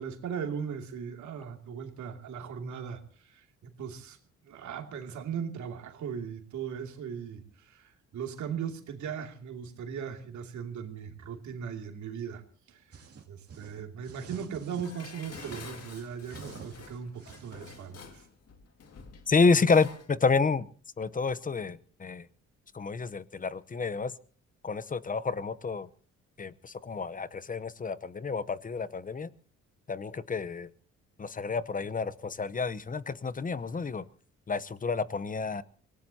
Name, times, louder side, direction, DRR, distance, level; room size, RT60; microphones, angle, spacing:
voice 1, 0.0-4.2 4.4-12.4 12.7-12.8 13.3-18.2, right 7 dB, 70° right, 4 dB, 2.7 m, -38 dB
sound 1, 12.9-14.9 15.2-17.9, right 5 dB, 50° right, 2.7 m, -48 dB
Dishes pots and pans, 14.8-20.1 20.4-20.5, left 5 dB, 55° left, 2.2 m, -49 dB
voice 2, 19.3-20.7 21.0-22.3 22.7-24.1 24.6-25.9 26.4-29.3 29.9-30.7 31.2-34.0 34.5-35.6, left 4 dB, 25° left, 16 dB, 0.9 m, -29 dB
25.5 x 18.0 x 2.9 m, 0.42 s
cardioid pair, 90°, 30 cm